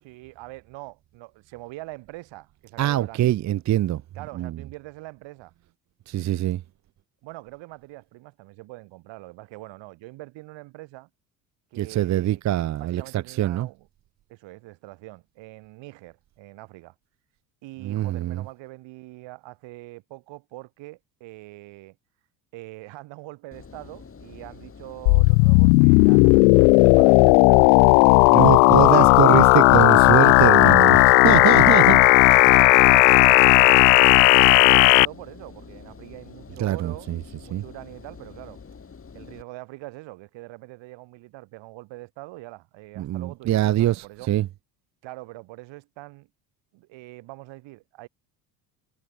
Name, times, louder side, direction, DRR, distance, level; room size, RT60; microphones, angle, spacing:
voice 1, 0.0-3.3 4.1-5.5 7.2-11.1 11.7-13.9 14.3-16.9 17.6-22.0 22.5-28.5 31.4-32.2 32.5-34.0 34.3-37.1 37.4-38.6 39.1-44.3 45.0-46.3 46.7-48.1, right 20 dB, 65° right, 5.8 m, -43 dB
voice 2, 2.8-4.0 4.3-4.6 6.1-6.6 11.7-13.7 17.8-18.4 28.3-32.0 36.6-37.2 37.5-37.6 43.0-44.5, right 13 dB, 35° right, 0.7 m, -23 dB
Engine, 23.5-39.4, left 5 dB, 25° left, 6.1 m, -46 dB
sound 1, 25.1-35.1, left 35 dB, 70° left, 0.6 m, -14 dB
hypercardioid pair, 75°, 48 cm